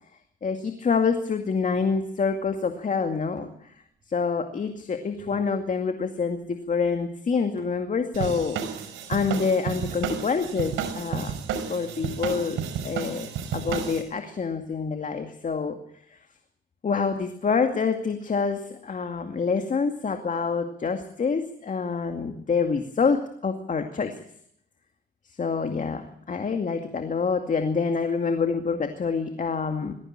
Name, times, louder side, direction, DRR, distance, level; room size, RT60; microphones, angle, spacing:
voice 1, 0.4-3.5 4.1-8.6 9.1-11.3 11.7-12.6 12.8-15.8 16.1-16.2 16.8-24.1 25.4-29.9, left 5 dB, 40° left, 6 dB, 2.3 m, -26 dB
sound 1, 1.7-2.0 3.4-4.4 5.2-6.0 6.3-6.7 7.6-8.1 8.8-9.4 9.9-11.4, right 4 dB, 40° right, 7.9 m, -51 dB
sound 2, 8.1-14.0, right 7 dB, 85° right, 5.4 m, -32 dB
21.5 x 15.5 x 8.9 m, 0.70 s
cardioid pair, 90°, 20 cm